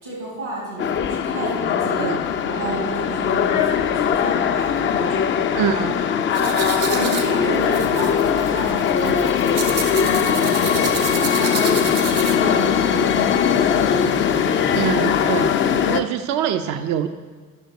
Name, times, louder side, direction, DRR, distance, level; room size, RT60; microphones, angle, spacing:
voice 1, 0.0-5.2 5.5-5.9 6.2-14.4, right 1 dB, 85° right, -5 dB, 2.5 m, -31 dB
sound 1, 0.8-16.0, left 7 dB, 30° left, 0.4 m, -20 dB
voice 2, 5.6-5.9 9.0-9.3 14.7-15.5 15.9-17.1, right 9 dB, 45° right, 8 dB, 0.5 m, -24 dB
sound 2, 6.3-12.6, right 6 dB, 70° right, 1.0 m, -30 dB
10.5 x 6.1 x 3.2 m, 1.5 s
figure-of-eight pair, 45°, 43 cm